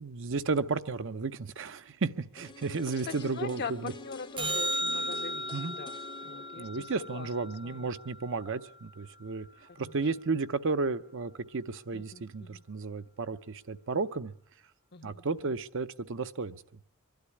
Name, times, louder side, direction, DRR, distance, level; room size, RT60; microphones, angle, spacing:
voice 1, 0.0-3.9 5.5-5.7 6.6-14.3 15.0-16.6, right 4 dB, 65° right, 0.7 m, -33 dB
sound 1, 2.4-8.3 8.6-8.7, left 3 dB, 20° left, 0.7 m, -48 dB
voice 2, 2.8-7.3 7.6-7.9 9.7-10.1 11.9-12.6 14.9-15.5, left 5 dB, 50° left, 0.7 m, -43 dB
sound 2, 4.4-8.8 15.4-15.5, equal, 20° right, 0.8 m, -36 dB
24.0 x 12.0 x 9.8 m
head